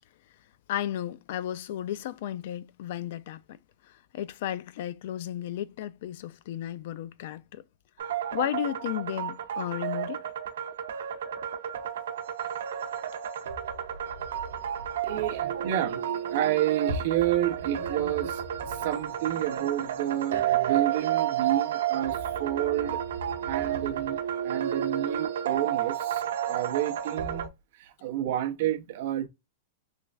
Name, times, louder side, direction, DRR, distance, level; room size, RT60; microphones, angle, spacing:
voice 1, 0.7-7.6 8.0-10.2, left 11 dB, 50° left, 0.4 m, -34 dB
sound 1, 8.0-27.5, right 9 dB, 85° right, 0.7 m, -31 dB
voice 2, 15.0-23.0 23.4-29.3, right 12 dB, 50° right, 0.6 m, -30 dB
3.2 x 3.1 x 2.4 m
supercardioid pair, 165°, 0 cm